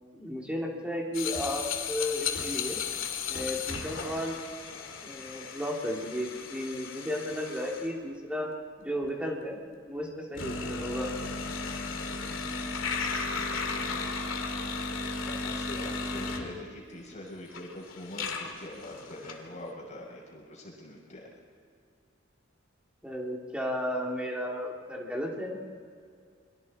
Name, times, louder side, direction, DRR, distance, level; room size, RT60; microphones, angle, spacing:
voice 1, 0.1-2.8 3.3-4.4 5.0-8.5 8.8-9.6 9.9-11.1 23.0-25.6, equal, 5° right, -2 dB, 2.9 m, -34 dB
sound 1, 1.1-7.9 10.3-16.5 17.2-17.3 17.5-19.3, left 5 dB, 80° left, 2.5 m, -35 dB
voice 2, 15.2-21.2, left 1 dB, 35° left, -3 dB, 6.8 m, -44 dB
29.0 x 23.5 x 4.3 m, 2.2 s
head